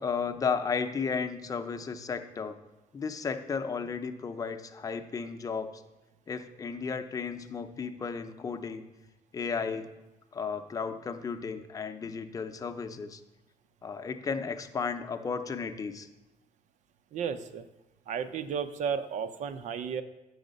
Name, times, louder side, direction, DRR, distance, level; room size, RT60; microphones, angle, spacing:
voice 1, 0.0-2.6 2.9-5.8 6.3-8.8 9.3-9.9 10.3-13.2 13.8-16.1, left 5 dB, 25° left, 7 dB, 0.7 m, -34 dB
voice 2, 17.1-17.7 18.1-20.0, right 7 dB, 70° right, 11 dB, 0.7 m, -33 dB
8.9 x 6.4 x 5.3 m, 1.0 s
cardioid pair, 135°, 13 cm